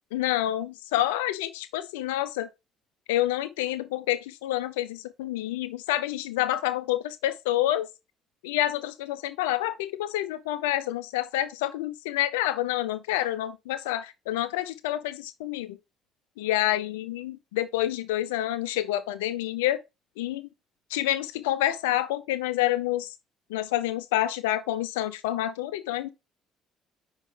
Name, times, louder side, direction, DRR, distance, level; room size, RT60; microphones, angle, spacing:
voice 1, 0.1-2.5 3.1-7.9 8.4-15.8 16.4-19.8 20.2-20.5 20.9-23.1 23.5-26.1, left 14 dB, 85° left, 0.6 m, -28 dB
5.6 x 5.0 x 3.7 m
hypercardioid pair, 60°, 0 cm